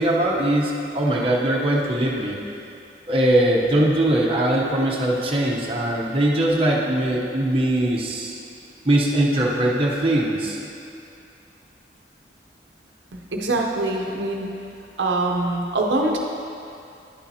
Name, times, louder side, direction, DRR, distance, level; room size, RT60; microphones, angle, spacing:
voice 1, 0.0-2.4 3.1-8.4 8.8-10.6, right 1 dB, 30° right, -4 dB, 0.9 m, -21 dB
voice 2, 13.3-14.5 15.0-16.2, right 2 dB, 85° right, 0 dB, 0.7 m, -23 dB
10.5 x 6.9 x 2.8 m, 2.6 s
head